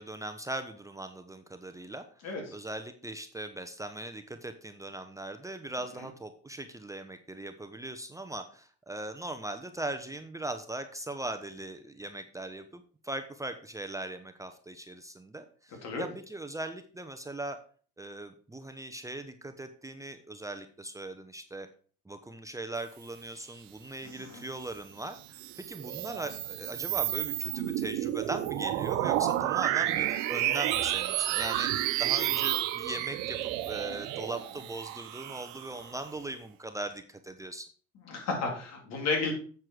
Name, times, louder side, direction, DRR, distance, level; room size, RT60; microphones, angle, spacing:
voice 1, 0.0-17.6 18.0-21.7 22.1-37.7, right 2 dB, 10° right, 7 dB, 0.9 m, -40 dB
voice 2, 2.2-2.6 15.8-16.1 24.0-24.4 38.1-39.3, left 4 dB, 60° left, 1 dB, 3.8 m, -33 dB
sound 1, 25.2-36.1, right 14 dB, 80° right, 1.0 m, -31 dB
7.9 x 7.2 x 4.8 m, 0.42 s
supercardioid pair, 85°, 29 cm